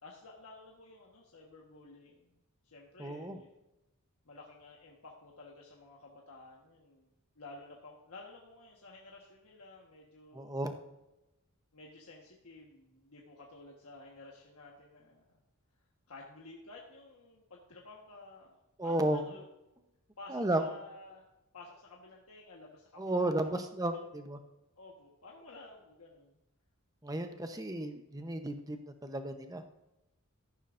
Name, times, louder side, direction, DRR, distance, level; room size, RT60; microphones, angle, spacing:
voice 1, 0.0-2.3 2.6-3.5 4.2-7.1 7.3-10.6 11.7-15.2 16.1-19.5 20.2-21.2 21.5-23.6 23.9-24.0 24.8-26.4, left 2 dB, 75° left, -2 dB, 1.4 m, -53 dB
voice 2, 3.0-3.4 10.3-10.7 18.8-19.3 20.3-20.6 23.0-24.4 27.0-29.6, right 1 dB, 15° right, 6 dB, 0.9 m, -33 dB
14.0 x 11.0 x 2.6 m, 0.95 s
head